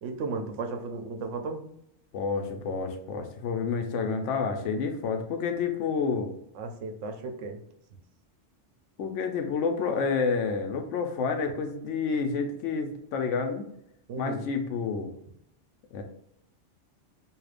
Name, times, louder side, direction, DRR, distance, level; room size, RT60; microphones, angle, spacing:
voice 1, 0.0-1.6 6.5-7.6 14.1-14.4, right 3 dB, 85° right, 5 dB, 1.0 m, -35 dB
voice 2, 2.1-6.3 9.0-13.6 14.2-15.1 15.9-16.0, left 5 dB, 90° left, 5 dB, 0.9 m, -29 dB
4.9 x 2.7 x 2.4 m, 0.76 s
omnidirectional pair, 1.2 m